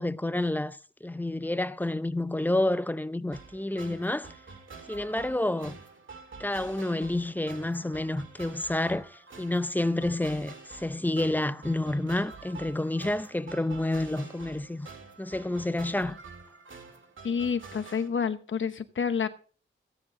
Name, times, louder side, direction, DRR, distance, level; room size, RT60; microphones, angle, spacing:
voice 1, 0.0-4.3 4.9-5.8 6.4-14.9 15.2-16.2, left 1 dB, 10° left, 0.6 m, -29 dB
sound 1, 3.3-18.1, right 4 dB, 70° right, 2.0 m, -47 dB
voice 2, 17.2-19.3, left 6 dB, 70° left, 1.1 m, -29 dB
15.0 x 9.7 x 3.8 m
wide cardioid pair, 85°, 21 cm